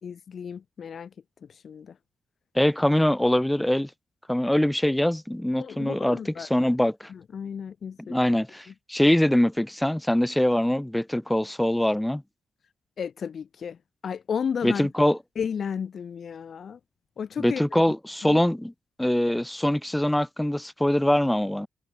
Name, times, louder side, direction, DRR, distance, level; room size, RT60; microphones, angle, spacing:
voice 1, 0.0-1.1 1.5-2.0 5.6-6.5 7.1-8.2 8.7-8.8 13.0-13.8 14.0-14.9 15.4-16.8 17.2-17.6 18.2-18.4, left 7 dB, 65° left, 3.9 m, -33 dB
voice 2, 2.5-3.9 4.3-7.1 8.1-12.2 14.6-15.2 17.4-18.7 19.0-21.7, left 1 dB, 5° left, 4.9 m, -23 dB
supercardioid pair, 55°, 0 cm